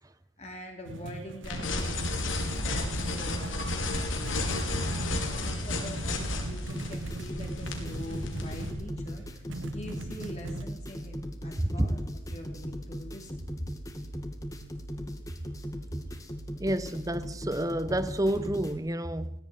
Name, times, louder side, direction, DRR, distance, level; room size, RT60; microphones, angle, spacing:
voice 1, 0.4-11.2 11.4-12.0 12.3-13.7, left 1 dB, 35° left, 3.1 m, -44 dB
sound 1, 0.9-10.7, right 1 dB, 80° right, 1.4 m, -40 dB
sound 2, 1.4-8.7, left 2 dB, 90° left, 4.9 m, -32 dB
sound 3, 6.7-18.7, equal, 20° left, 2.3 m, -39 dB
voice 2, 16.6-19.3, right 1 dB, 20° right, 1.0 m, -29 dB
18.0 x 17.0 x 9.6 m
head